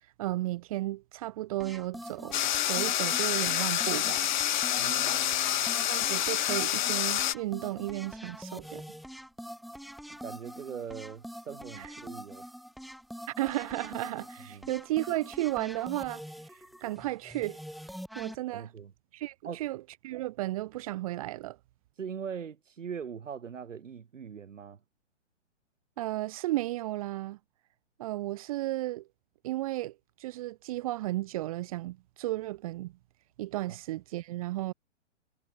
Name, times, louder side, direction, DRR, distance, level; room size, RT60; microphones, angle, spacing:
voice 1, 0.2-4.3 5.9-8.8 11.8-11.9 13.4-16.2 16.5-17.6 18.1-18.7 19.1-21.6 26.0-27.4 28.0-29.1 29.4-32.9 33.4-34.7, right 16 dB, 30° right, 1.5 m, -34 dB
sound 1, 1.6-18.4, equal, ahead, 3.1 m, -45 dB
sound 2, 2.3-7.3, left 12 dB, 40° left, 1.0 m, -28 dB
voice 2, 4.7-5.7 10.2-12.4 14.5-14.7 18.5-18.9 19.4-19.7 22.0-24.8 33.7-33.8, right 7 dB, 85° right, 4.9 m, -41 dB
hypercardioid pair, 165°, 37 cm